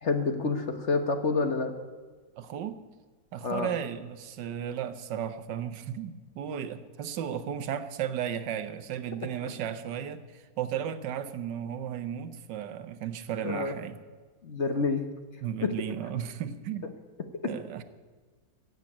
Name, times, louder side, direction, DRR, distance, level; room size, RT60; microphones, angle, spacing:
voice 1, 0.0-1.7 3.4-3.7 9.4-9.5 13.4-13.7 14.4-15.0 15.6-15.7, left 4 dB, 45° left, 7 dB, 1.3 m, -28 dB
voice 2, 2.4-2.8 3.3-14.0 15.4-16.9 17.5-17.8, right 9 dB, 80° right, 11 dB, 1.5 m, -35 dB
16.5 x 7.9 x 8.7 m, 1.4 s
omnidirectional pair, 1.9 m